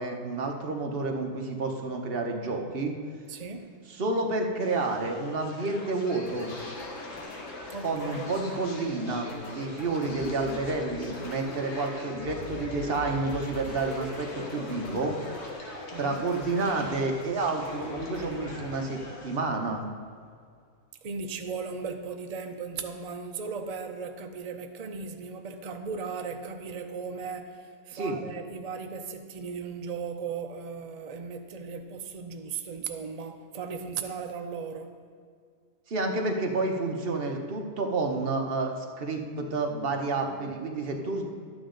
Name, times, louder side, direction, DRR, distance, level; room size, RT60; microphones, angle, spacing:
voice 1, 0.0-2.9 4.0-6.5 7.8-15.1 16.0-19.8 27.9-28.2 35.9-41.3, right 3 dB, 45° right, 2 dB, 1.1 m, -30 dB
voice 2, 3.3-3.7 7.7-8.3 15.9-16.2 21.0-35.0, right 5 dB, 80° right, 6 dB, 0.3 m, -37 dB
sound 1, 4.6-19.4, left 1 dB, 45° left, 1.6 m, -42 dB
sound 2, 6.3-20.1, left 3 dB, 80° left, 1.7 m, -44 dB
12.0 x 9.2 x 3.9 m, 2.1 s
omnidirectional pair, 1.6 m